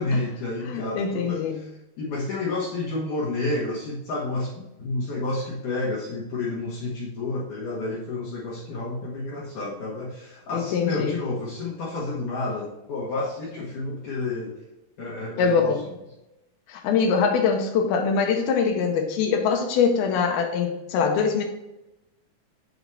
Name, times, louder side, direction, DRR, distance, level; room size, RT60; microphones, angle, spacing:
voice 1, 0.0-1.7 2.0-14.6 15.0-15.8, left 2 dB, 65° left, -6 dB, 2.6 m, -30 dB
voice 2, 0.6-1.6 10.5-11.1 15.4-15.8 16.7-21.4, left 6 dB, 90° left, 3 dB, 2.7 m, -23 dB
6.8 x 4.0 x 4.7 m, 0.92 s
omnidirectional pair, 4.3 m